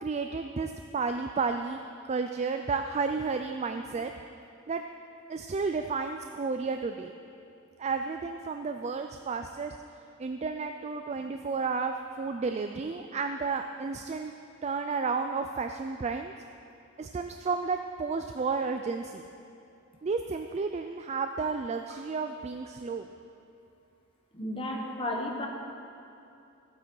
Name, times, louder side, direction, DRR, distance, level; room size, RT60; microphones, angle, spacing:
voice 1, 0.0-4.2 4.7-4.8 5.3-7.1 7.8-9.8 10.2-14.3 14.6-16.3 17.0-19.2 20.0-23.1, right 4 dB, 30° right, 6 dB, 0.3 m, -32 dB
voice 2, 24.3-25.5, left 1 dB, 25° left, 0 dB, 1.3 m, -33 dB
14.5 x 9.0 x 4.6 m, 2.7 s
head